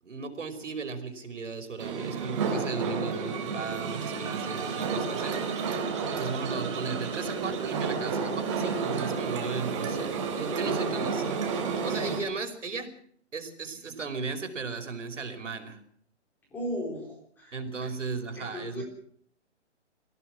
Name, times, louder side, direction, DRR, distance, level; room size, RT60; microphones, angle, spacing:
voice 1, 0.0-5.7 6.1-12.9 13.3-15.8 17.5-18.8, right 4 dB, 80° right, 6 dB, 5.2 m, -36 dB
sound 1, 1.8-12.2, right 5 dB, 25° right, 3.6 m, -31 dB
voice 2, 16.5-17.6 18.3-18.8, left 1 dB, 5° left, 0 dB, 3.8 m, -36 dB
25.5 x 16.5 x 6.3 m, 0.63 s
hypercardioid pair, 175°, 36 cm